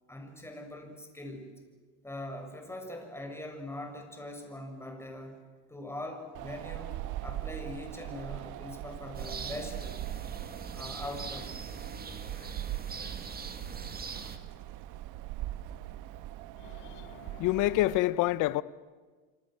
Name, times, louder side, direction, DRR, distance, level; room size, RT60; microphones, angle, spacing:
voice 1, 0.1-1.5 2.0-5.4 5.7-7.0 7.2-10.0 10.7-11.6 12.3-12.6 13.0-13.3 13.7-14.0, left 1 dB, 5° left, 6.7 m, -42 dB
Wind, 6.3-18.0, right 13 dB, 60° right, 1.4 m, -41 dB
sound 1, 9.1-14.4, right 5 dB, 25° right, 2.5 m, -42 dB
voice 2, 16.6-18.6, left 16 dB, 65° left, 1.1 m, -28 dB
26.5 x 26.5 x 7.7 m
supercardioid pair, 100°, 34 cm